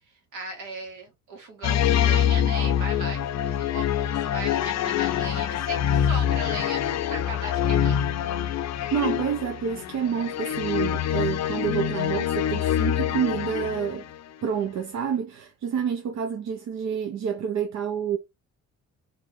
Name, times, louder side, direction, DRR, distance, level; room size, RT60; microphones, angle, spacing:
voice 1, 0.0-8.3, right 3 dB, 80° right, 1.6 m, -38 dB
sound 1, 1.6-14.2, left 10 dB, 60° left, 0.5 m, -25 dB
voice 2, 8.9-14.1 14.4-18.2, right 8 dB, 65° right, 0.7 m, -28 dB
3.6 x 2.7 x 3.3 m
cardioid pair, 90°, 30 cm